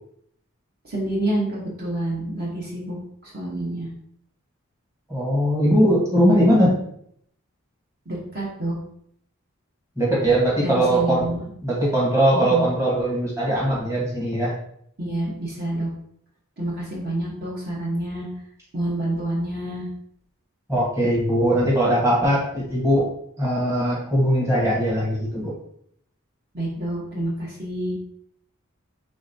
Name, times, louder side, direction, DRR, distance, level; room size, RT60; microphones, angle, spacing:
voice 1, 0.8-3.0 3.2-3.9 8.1-8.8 10.6-11.5 12.3-12.7 15.0-15.9 16.6-18.3 18.7-19.9 26.5-28.0, right 1 dB, 45° right, -4 dB, 1.1 m, -28 dB
voice 2, 5.1-6.8 10.0-11.3 11.6-14.5 20.7-23.0 23.4-25.5, right 1 dB, 15° right, -6 dB, 1.3 m, -20 dB
5.0 x 3.4 x 2.7 m, 0.68 s
head